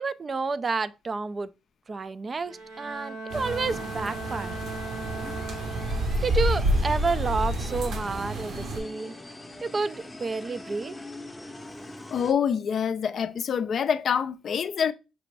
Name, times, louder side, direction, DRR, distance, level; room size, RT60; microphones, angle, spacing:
voice 1, 0.0-1.5 1.9-4.6 6.2-9.2 9.6-11.0, right 4 dB, 35° right, 0.3 m, -30 dB
Bowed string instrument, 2.4-6.5, right 2 dB, 85° right, 1.5 m, -38 dB
sound 1, 3.3-8.8, equal, 70° right, 1.0 m, -29 dB
sound 2, 4.9-12.3, left 2 dB, 10° left, 0.6 m, -43 dB
voice 2, 12.1-14.9, left 7 dB, 55° left, 0.4 m, -26 dB
5.9 x 2.5 x 3.2 m
cardioid pair, 90°, 0 cm